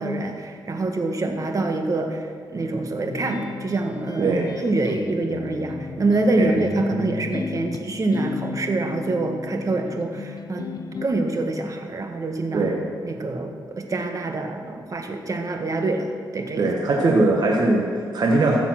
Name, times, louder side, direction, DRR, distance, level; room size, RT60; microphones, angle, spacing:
voice 1, 0.0-10.6 11.0-12.7 13.0-16.7, right 2 dB, 45° right, 4 dB, 1.5 m, -26 dB
sound 1, 3.1-11.1, left 4 dB, 50° left, 0.8 m, -33 dB
voice 2, 4.2-4.5 6.4-6.5 12.5-12.8 16.6-18.7, right 2 dB, 60° right, -1 dB, 1.5 m, -20 dB
15.0 x 7.1 x 5.9 m, 2.1 s
cardioid pair, 90°, 8 cm